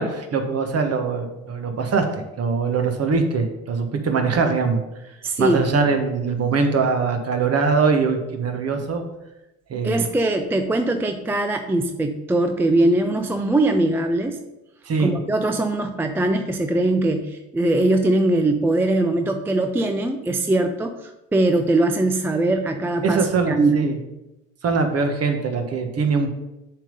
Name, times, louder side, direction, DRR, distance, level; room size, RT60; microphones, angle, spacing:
voice 1, 0.0-4.8 5.4-9.0 9.7-10.1 14.8-15.1 23.0-24.0 24.6-26.3, right 4 dB, 35° right, 5 dB, 1.3 m, -22 dB
voice 2, 5.2-5.6 9.8-14.4 15.0-23.9, right 2 dB, 5° right, 6 dB, 0.4 m, -21 dB
7.3 x 3.7 x 5.4 m, 0.95 s
hypercardioid pair, 75°, 40 cm